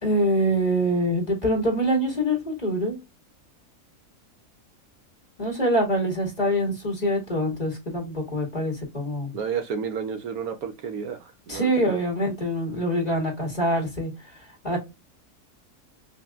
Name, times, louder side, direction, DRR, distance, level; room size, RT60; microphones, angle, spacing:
voice 1, 0.0-3.0 5.4-9.3 11.5-14.1 14.6-14.8, equal, 25° left, 1.9 m, -24 dB
voice 2, 9.3-12.0, right 7 dB, 70° right, 1.1 m, -31 dB
5.2 x 2.6 x 2.3 m
omnidirectional pair, 1.7 m